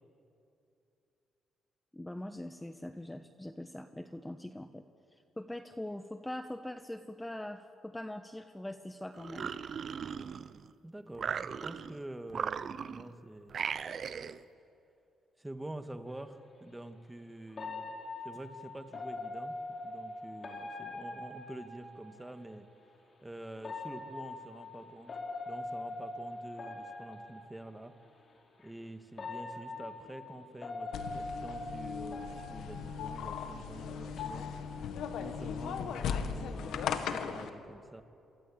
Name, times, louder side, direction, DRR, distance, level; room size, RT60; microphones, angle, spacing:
voice 1, 1.9-4.8 5.1-9.5, left 1 dB, 10° left, 8 dB, 1.2 m, -42 dB
sound 1, 9.2-10.7 11.1-12.0 12.3-13.1 13.5-14.4, right 7 dB, 55° right, 1.0 m, -38 dB
voice 2, 10.8-13.6 15.4-17.9 18.2-19.6 19.8-22.7 23.2-25.2 25.5-28.0 28.6-34.5 35.2-38.0, right 1 dB, 10° right, 8 dB, 1.9 m, -47 dB
sound 2, 16.1-16.2 17.6-22.3 23.6-27.8 28.6-28.7 29.2-33.6 33.9-34.2, left 2 dB, 45° left, 5.0 m, -43 dB
sound 3, 30.9-37.5, left 7 dB, 80° left, 2.0 m, -37 dB
27.5 x 24.5 x 8.9 m, 2.7 s
cardioid pair, 90°, 0 cm